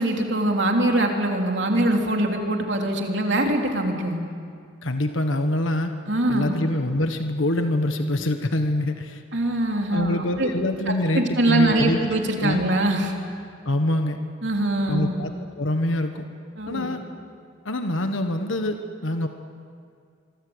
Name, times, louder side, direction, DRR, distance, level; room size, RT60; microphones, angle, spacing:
voice 1, 0.0-4.2 6.1-6.5 9.3-10.5 10.9-13.1 14.4-15.1 16.6-16.9, right 1 dB, 65° right, 2 dB, 3.2 m, -23 dB
voice 2, 4.8-5.9 6.3-9.2 9.9-12.0 12.4-12.6 13.6-14.2 14.9-16.2 16.7-17.0 17.6-19.3, left 1 dB, 80° left, 6 dB, 1.4 m, -25 dB
25.5 x 24.0 x 8.0 m, 2.2 s
head